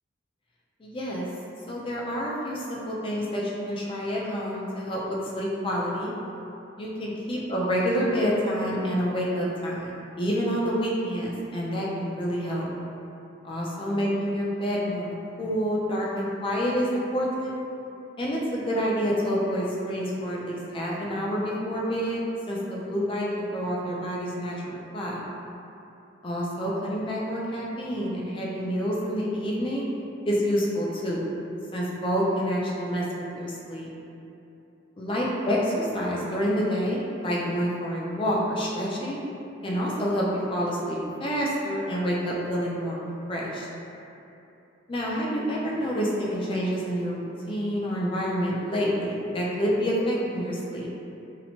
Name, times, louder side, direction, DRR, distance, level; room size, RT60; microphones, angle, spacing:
voice 1, 0.8-1.3 1.7-6.1 6.8-12.7 13.4-17.5 18.2-25.2 26.2-29.9 30.3-31.3 31.7-33.9 35.0-39.2 39.6-43.0 43.3-43.7 44.9-50.9, equal, 25° left, -4 dB, 0.4 m, -28 dB
2.8 x 2.1 x 2.7 m, 2.8 s
head